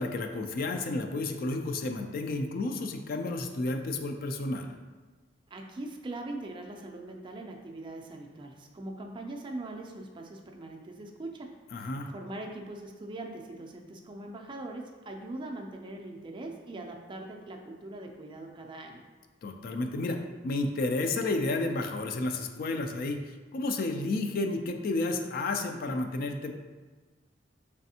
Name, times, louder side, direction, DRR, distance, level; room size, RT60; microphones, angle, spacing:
voice 1, 0.0-4.7 11.7-12.1 19.4-26.5, left 2 dB, 50° left, 5 dB, 0.3 m, -31 dB
voice 2, 5.5-11.6 12.1-19.1, right 2 dB, 25° right, 2 dB, 0.4 m, -41 dB
4.0 x 3.4 x 2.7 m, 1.3 s
head